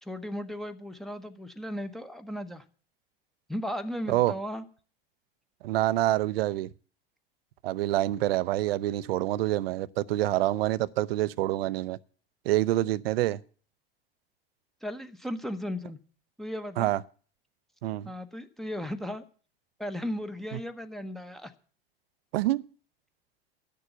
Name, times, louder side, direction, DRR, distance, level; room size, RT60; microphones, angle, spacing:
voice 1, 0.0-2.6 3.5-4.6 14.8-16.0 16.4-16.9 18.0-19.2 19.8-21.5, equal, ahead, 0.9 m, -36 dB
voice 2, 5.6-6.7 7.6-12.0 12.5-13.4 16.8-17.0 17.8-18.1 22.3-22.6, right 15 dB, 75° right, 0.6 m, -26 dB
11.0 x 6.9 x 8.0 m
hypercardioid pair, 95°, 30 cm